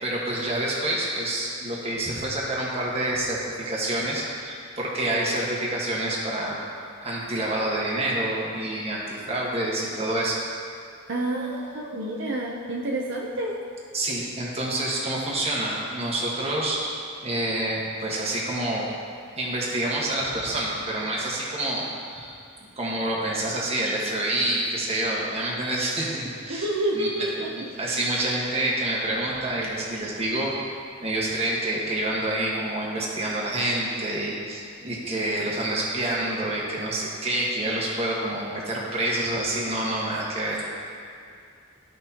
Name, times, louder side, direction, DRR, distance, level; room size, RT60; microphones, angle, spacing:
voice 1, 0.0-6.6 7.0-10.4 13.9-16.8 17.2-18.9 19.4-22.4 22.8-26.7 26.9-30.5 31.0-40.6, right 1 dB, 30° right, -4 dB, 1.4 m, -27 dB
voice 2, 11.1-13.6 26.5-27.7, right 1 dB, 60° right, -3 dB, 0.7 m, -28 dB
14.0 x 5.3 x 2.8 m, 2.4 s
head